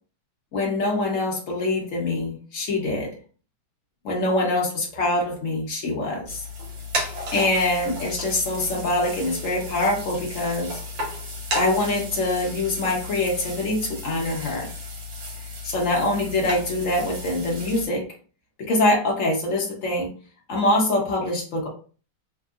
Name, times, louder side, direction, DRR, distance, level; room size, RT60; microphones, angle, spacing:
voice 1, 0.5-3.1 4.0-6.4 7.3-10.8 11.5-14.7 15.6-18.1 18.6-20.1 20.5-21.7, left 2 dB, 50° left, -1 dB, 1.1 m, -24 dB
sound 1, 6.3-17.9, left 1 dB, 80° right, 1.6 m, -34 dB
3.6 x 2.0 x 2.4 m, 0.39 s
omnidirectional pair, 2.1 m